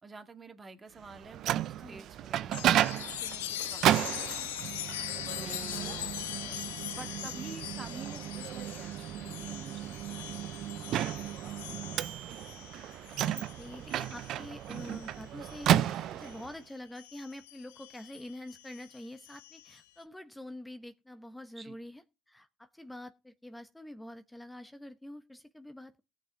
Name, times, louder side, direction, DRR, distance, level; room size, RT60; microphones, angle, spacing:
voice 1, 0.0-4.8 5.4-11.6 21.6-21.8, right 4 dB, 30° right, 2.0 m, -49 dB
Microwave oven, 1.1-16.5, right 12 dB, 65° right, 0.6 m, -33 dB
Chime, 2.5-16.5 17.0-19.8, left 12 dB, 85° left, 0.8 m, -42 dB
voice 2, 13.3-15.8 16.1-26.0, left 1 dB, 10° left, 1.0 m, -46 dB
18.5 x 6.4 x 3.4 m
hypercardioid pair, 60°, 0 cm